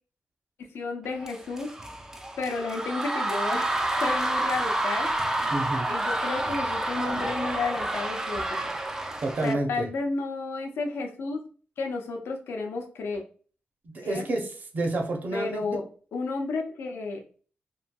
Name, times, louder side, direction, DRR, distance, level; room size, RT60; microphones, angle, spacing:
voice 1, 0.6-1.7 2.4-3.7 4.0-5.1 5.9-8.7 9.4-11.4 11.8-13.2 14.0-14.3 15.3-15.8 16.1-17.2, left 3 dB, 80° left, 2 dB, 0.7 m, -32 dB
sound 1, 1.2-9.5, right 1 dB, 15° right, 0.3 m, -29 dB
voice 2, 5.5-5.9 9.2-9.9 13.8-15.6, right 2 dB, 45° right, 2 dB, 0.7 m, -29 dB
3.1 x 2.6 x 2.2 m, 0.39 s
wide cardioid pair, 150°, 4 cm